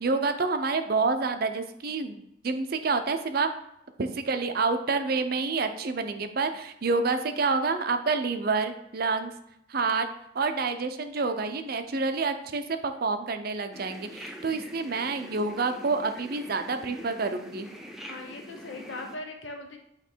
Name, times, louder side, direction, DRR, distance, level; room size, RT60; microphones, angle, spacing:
voice 1, 0.0-3.5 4.0-9.3 9.7-10.1 10.3-17.7, right 4 dB, 50° right, 8 dB, 0.6 m, -28 dB
sound 1, 13.7-19.2, equal, ahead, 0.6 m, -44 dB
voice 2, 18.1-19.8, left 2 dB, 75° left, 4 dB, 1.0 m, -39 dB
8.2 x 3.1 x 4.5 m, 0.80 s
head